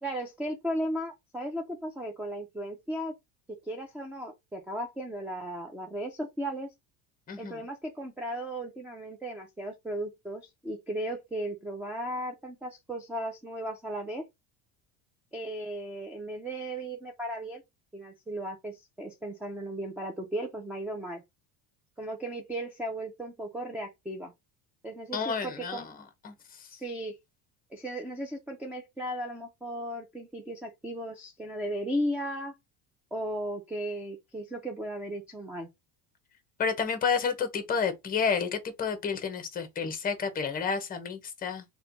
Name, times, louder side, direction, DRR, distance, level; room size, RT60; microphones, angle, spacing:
voice 1, 0.0-3.1 3.7-6.7 7.4-14.2 15.3-17.6 17.9-21.2 22.0-24.3 24.8-25.9 26.7-27.2 27.7-32.5 33.1-35.7, right 1 dB, 5° right, 0.4 m, -36 dB
voice 2, 7.3-7.6 25.1-25.9 26.2-26.7 36.6-41.6, left 6 dB, 25° left, 0.8 m, -30 dB
4.3 x 2.2 x 3.9 m
cardioid pair, 155°, 37 cm